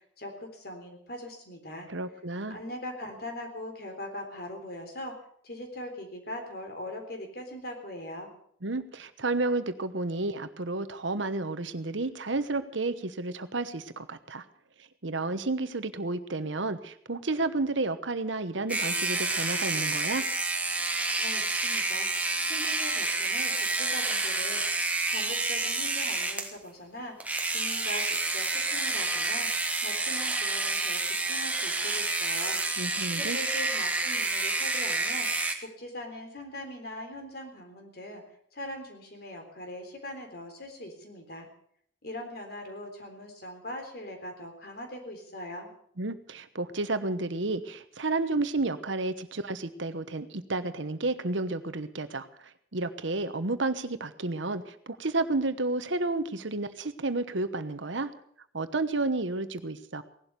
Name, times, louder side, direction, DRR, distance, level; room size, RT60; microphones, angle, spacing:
voice 1, 0.0-1.9 2.5-5.2 5.4-8.3 21.2-22.1 22.4-24.7 25.1-29.5 29.8-32.6 33.1-38.2 38.5-41.5 42.0-45.7, left 1 dB, 55° left, 4 dB, 3.7 m, -41 dB
voice 2, 1.9-2.6 8.6-14.4 15.0-20.3 32.8-33.4 46.0-58.1 58.5-60.0, right 2 dB, 75° right, 11 dB, 1.1 m, -31 dB
sound 1, 18.7-26.5 27.2-35.5, right 3 dB, 10° right, 1.4 m, -29 dB
17.5 x 12.0 x 6.8 m, 0.64 s
head